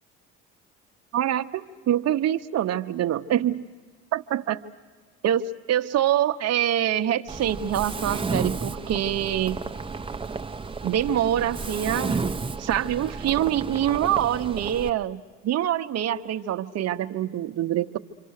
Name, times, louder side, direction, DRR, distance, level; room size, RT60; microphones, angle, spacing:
voice 1, 1.1-3.7 4.1-4.6 5.2-9.6 10.8-12.2 12.6-18.0, right 11 dB, 50° right, 7 dB, 1.0 m, -25 dB
Mechanisms, 7.3-14.9, right 4 dB, 15° right, 0.9 m, -32 dB
27.5 x 25.5 x 6.6 m, 1.4 s
hypercardioid pair, 70°, 34 cm